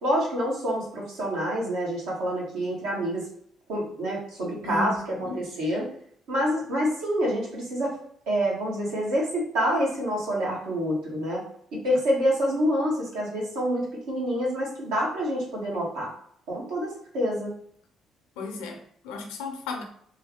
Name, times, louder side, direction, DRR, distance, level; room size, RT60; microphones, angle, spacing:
voice 1, 0.0-3.3 3.7-5.9 6.3-8.0 8.3-11.4 11.7-16.1 16.5-17.5, equal, 85° right, -3 dB, 1.2 m, -27 dB
voice 2, 4.6-5.5 18.4-19.8, left 3 dB, 90° left, 4 dB, 0.6 m, -35 dB
3.2 x 2.3 x 3.5 m, 0.64 s
supercardioid pair, 65°, 0 cm